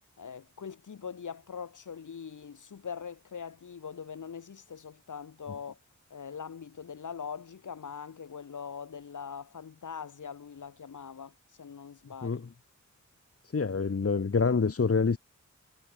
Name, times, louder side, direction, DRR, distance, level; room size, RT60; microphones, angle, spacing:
voice 1, 0.2-5.8 6.1-12.4, left 6 dB, 90° left, 4.8 m, -42 dB
voice 2, 13.5-15.2, left 5 dB, 50° left, 2.5 m, -26 dB
wide cardioid pair, 75°, 30 cm